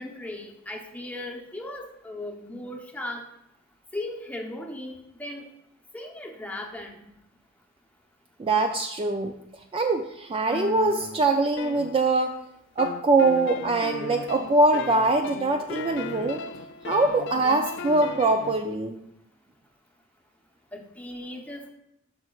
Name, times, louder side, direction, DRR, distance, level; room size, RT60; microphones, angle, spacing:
voice 1, 0.0-3.3 3.9-5.4 5.9-7.0 20.7-21.7, left 1 dB, 5° left, 2 dB, 0.8 m, -37 dB
voice 2, 8.4-9.3 9.7-12.4 12.8-16.4 16.8-19.0, right 2 dB, 25° right, 5 dB, 0.3 m, -23 dB
sound 1, 10.5-12.4 12.8-18.6, left 5 dB, 55° left, 0.3 m, -37 dB
10.5 x 6.0 x 2.3 m, 0.80 s
head